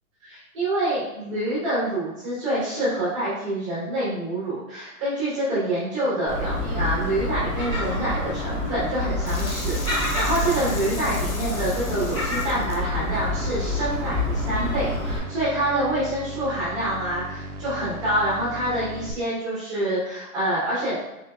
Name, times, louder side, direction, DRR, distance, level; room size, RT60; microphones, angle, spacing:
voice 1, 0.2-20.9, right 1 dB, 20° right, -9 dB, 0.9 m, -26 dB
Gull seagull, 6.3-15.2, left 1 dB, 20° left, 1.1 m, -27 dB
sound 1, 9.2-14.4, left 3 dB, 50° left, 0.8 m, -39 dB
sound 2, 13.1-19.1, equal, 85° right, 0.6 m, -37 dB
3.9 x 3.4 x 2.3 m, 0.93 s
hypercardioid pair, 175°, 43 cm